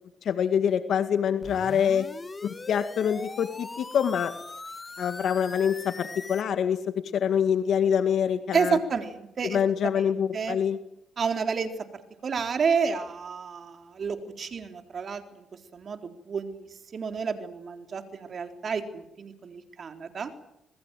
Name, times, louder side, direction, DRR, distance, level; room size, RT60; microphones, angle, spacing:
voice 1, 0.2-2.1 2.4-4.3 5.0-6.8 7.1-8.8 9.4-10.8, left 8 dB, 65° left, 9 dB, 2.0 m, -25 dB
sound 1, 1.4-6.4, left 3 dB, 25° left, 1.6 m, -41 dB
voice 2, 8.5-9.9 10.3-10.6 11.2-15.5 15.7-16.7 16.9-20.3, right 5 dB, 50° right, 6 dB, 4.0 m, -30 dB
27.0 x 20.5 x 9.2 m, 0.80 s
cardioid pair, 90°, 0 cm